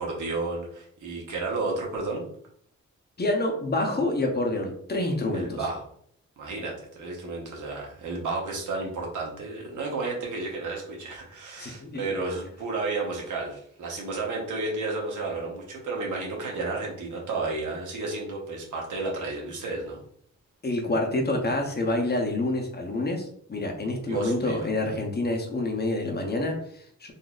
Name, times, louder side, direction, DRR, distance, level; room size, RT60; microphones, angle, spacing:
voice 1, 0.0-2.2 5.3-5.8 6.4-20.0 24.1-24.6, right 3 dB, 85° right, -1 dB, 1.1 m, -32 dB
voice 2, 3.2-5.6 11.6-12.0 20.6-27.1, left 2 dB, 35° left, 2 dB, 0.8 m, -27 dB
4.0 x 2.7 x 2.4 m, 0.65 s
cardioid pair, 85°, 30 cm